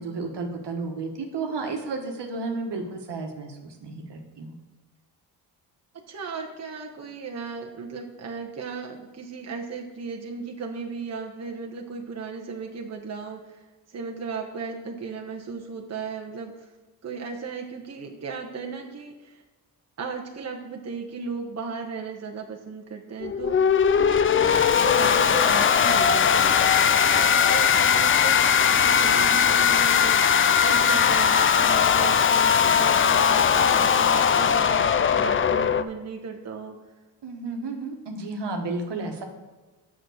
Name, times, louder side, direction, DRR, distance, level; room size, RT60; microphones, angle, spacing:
voice 1, 0.0-4.5 37.2-39.2, right 3 dB, 65° right, 3 dB, 1.5 m, -32 dB
voice 2, 6.1-13.6 13.9-16.7 17.0-19.4 20.0-23.6 24.0-30.2 30.6-36.8, right 5 dB, 35° right, 1 dB, 1.1 m, -36 dB
sound 1, 23.2-35.8, left 7 dB, 30° left, 0.4 m, -19 dB
6.9 x 6.1 x 6.4 m, 1.3 s
cardioid pair, 80°, 44 cm